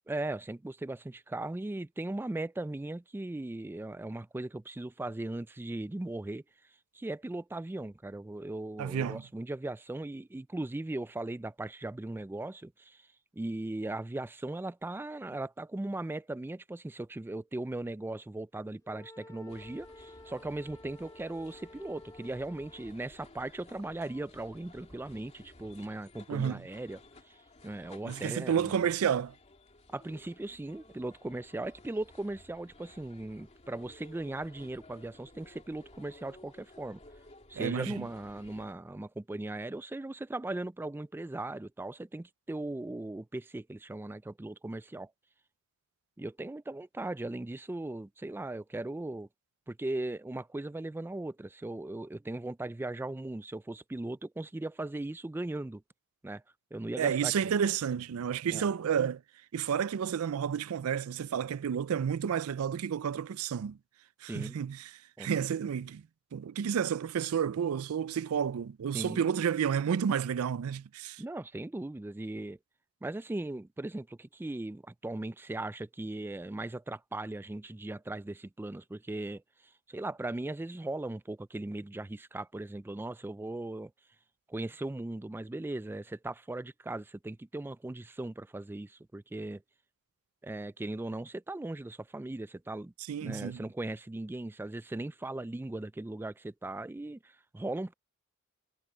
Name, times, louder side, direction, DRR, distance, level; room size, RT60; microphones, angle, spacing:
voice 1, 0.1-6.4 6.9-13.1 13.3-28.8 29.9-37.0 37.5-45.1 46.2-49.3 49.7-55.8 56.2-56.4 56.7-57.3 58.5-58.7 64.3-64.6 65.2-65.3 68.9-69.3 71.2-72.6 73.0-83.9 84.5-89.6 90.4-92.9 93.2-97.9, right 2 dB, 10° right, 0.3 m, -38 dB
voice 2, 8.8-9.2 26.3-26.6 28.0-29.3 37.6-38.1 57.0-59.2 59.5-63.8 64.2-64.8 65.2-66.0 66.3-71.2 93.1-93.6, right 8 dB, 85° right, 0.4 m, -31 dB
Wind instrument woodwind instrument, 18.8-23.0, left 1 dB, 15° left, 4.7 m, -53 dB
sound 1, 19.5-38.7, left 2 dB, 30° left, 2.6 m, -56 dB
head